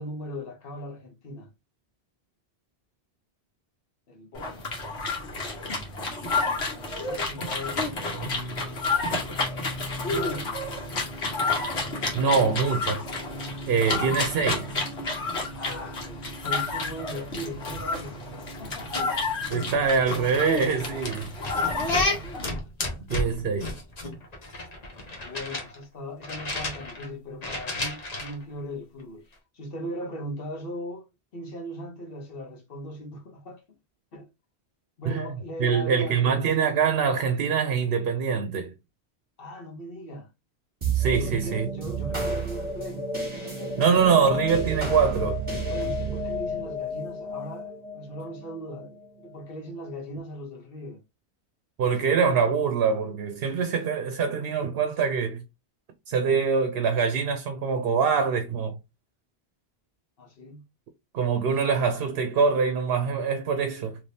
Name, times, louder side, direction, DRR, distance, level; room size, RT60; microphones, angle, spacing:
voice 1, 0.0-1.5 4.1-4.7 6.7-8.0 10.1-10.6 15.5-18.2 18.6-19.1 19.4-19.6 21.3-21.4 21.8-23.0 25.1-31.1 31.3-33.6 34.1-34.3 35.0-36.5 39.4-40.3 41.2-43.1 43.4-44.1 45.7-51.0 60.2-60.6 61.3-61.5, equal, 60° left, 1.1 m, -39 dB
sound 1, 4.3-22.5, left 3 dB, 80° left, 1.4 m, -30 dB
voice 2, 12.1-13.0 13.7-14.7 19.5-21.3 23.1-23.7 35.1-35.3 35.6-38.7 40.9-41.7 43.8-45.4 51.8-55.4 56.1-58.8 61.1-64.0, right 6 dB, 70° right, 0.8 m, -24 dB
sound 2, 18.9-19.1 19.5-19.8 20.1-22.1 22.4-25.8 26.2-27.1 27.4-28.4, left 1 dB, 40° left, 1.0 m, -34 dB
sound 3, 40.8-49.5, right 2 dB, 30° right, 1.4 m, -31 dB
3.4 x 3.0 x 2.7 m
omnidirectional pair, 1.1 m